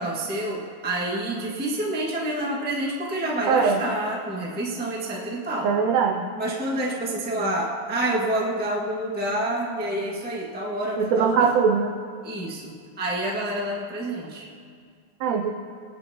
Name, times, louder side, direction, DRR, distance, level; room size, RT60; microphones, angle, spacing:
voice 1, 0.0-5.7 6.4-11.6 12.2-14.4, right 1 dB, 10° right, -4 dB, 0.6 m, -28 dB
voice 2, 3.5-3.8 5.6-6.2 11.0-11.9 15.2-15.5, right 6 dB, 80° right, 4 dB, 1.5 m, -21 dB
23.5 x 9.8 x 2.9 m, 2.1 s
omnidirectional pair, 3.7 m